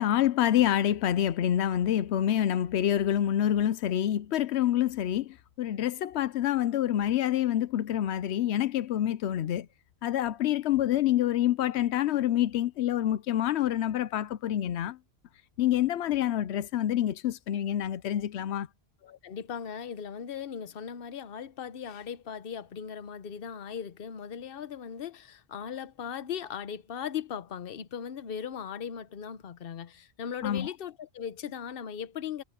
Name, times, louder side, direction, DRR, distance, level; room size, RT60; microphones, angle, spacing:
voice 1, 0.0-9.7 10.0-15.0 15.6-18.7 30.4-30.7, left 11 dB, 90° left, 0.9 m, -27 dB
voice 2, 19.0-32.4, left 8 dB, 60° left, 1.0 m, -38 dB
omnidirectional pair, 1.1 m